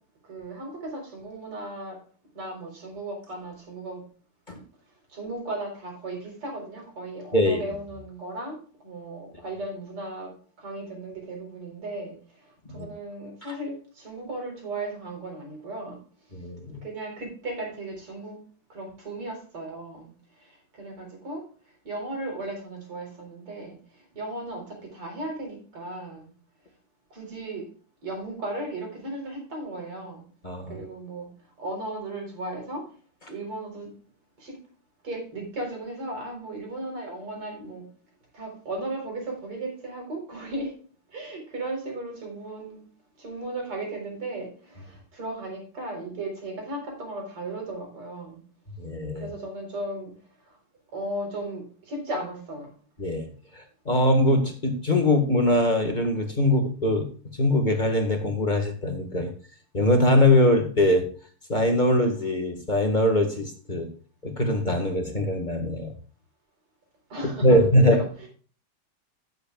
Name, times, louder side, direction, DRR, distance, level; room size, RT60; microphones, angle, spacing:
voice 1, 0.2-2.0 2.3-4.0 4.5-4.6 5.1-16.0 16.8-18.4 18.7-20.1 20.4-21.4 21.8-26.3 27.1-27.7 28.0-30.2 30.7-31.3 31.6-32.9 33.3-33.9 34.4-34.6 35.0-37.8 38.3-40.8 41.1-42.8 43.2-48.4 49.2-50.1 50.4-50.6 50.9-52.7 67.1-68.3, right 2 dB, 85° right, 1 dB, 5.0 m, -36 dB
voice 2, 7.3-7.6 12.7-12.9 13.5-13.6 16.3-16.8 30.4-30.7 48.8-49.3 53.0-53.3 53.5-57.1 57.4-59.3 59.7-61.1 61.5-63.9 64.2-65.9 67.4-68.0, left 1 dB, 25° left, 3 dB, 1.6 m, -22 dB
16.5 x 7.9 x 2.4 m, 0.41 s
omnidirectional pair, 2.4 m